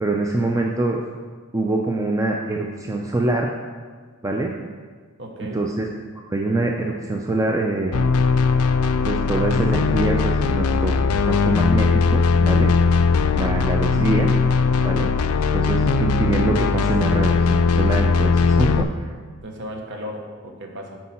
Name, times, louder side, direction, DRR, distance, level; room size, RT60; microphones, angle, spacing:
voice 1, 0.0-1.0 1.5-3.5 4.2-4.5 5.5-5.9 6.3-8.1 9.0-12.7 13.3-14.3 14.8-15.1 15.5-19.1, right 2 dB, 15° right, 0 dB, 0.4 m, -24 dB
voice 2, 5.2-5.6 19.4-21.0, equal, 55° right, 2 dB, 1.0 m, -35 dB
sound 1, 7.9-18.8, left 4 dB, 75° left, 0.4 m, -19 dB
8.2 x 4.7 x 4.3 m, 1.5 s
head